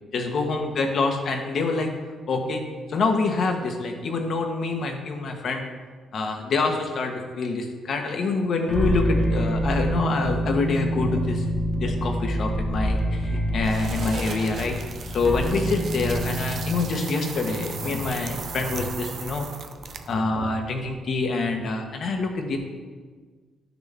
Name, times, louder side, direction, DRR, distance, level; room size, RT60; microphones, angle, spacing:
voice 1, 0.1-1.9 2.3-2.6 2.9-5.6 6.1-11.4 11.8-14.7 15.1-19.5 20.1-22.6, left 3 dB, 60° left, 3 dB, 1.3 m, -26 dB
sound 1, 8.7-20.1, equal, 20° left, 1.4 m, -28 dB
sound 2, 13.6-20.2, right 6 dB, 55° right, 0.6 m, -37 dB
12.0 x 6.2 x 3.6 m, 1.5 s
cardioid pair, 90°, 0 cm